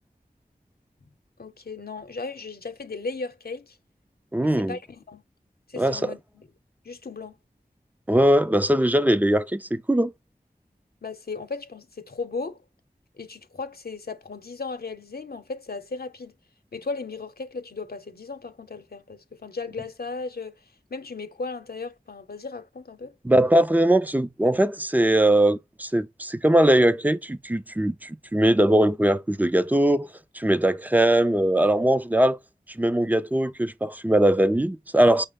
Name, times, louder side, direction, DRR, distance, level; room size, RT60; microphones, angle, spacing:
voice 1, 1.4-3.8 4.4-5.2 5.7-6.5 6.8-7.4 11.0-12.6 13.2-16.4 16.7-20.6 20.9-23.2, left 4 dB, 75° left, 0.8 m, -36 dB
voice 2, 4.3-4.8 5.8-6.1 8.1-10.1 23.2-30.1 30.3-32.4 32.7-35.3, right 1 dB, 10° right, 0.5 m, -21 dB
5.4 x 2.1 x 3.6 m
wide cardioid pair, 45°, 16 cm